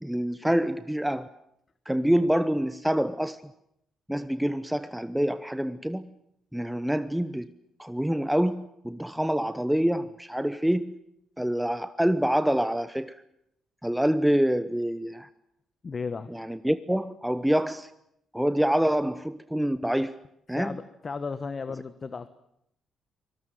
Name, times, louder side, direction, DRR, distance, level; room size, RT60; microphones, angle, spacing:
voice 1, 0.0-1.3 1.9-3.4 4.1-6.1 6.5-7.5 7.8-11.0 11.4-13.2 13.8-15.3 16.3-17.9 18.3-20.2 20.5-20.8, equal, 5° right, 12 dB, 0.9 m, -26 dB
voice 2, 15.8-16.3 20.5-22.3, left 4 dB, 35° left, 13 dB, 1.2 m, -34 dB
24.5 x 20.0 x 9.2 m, 0.77 s
cardioid pair, 90°, 0 cm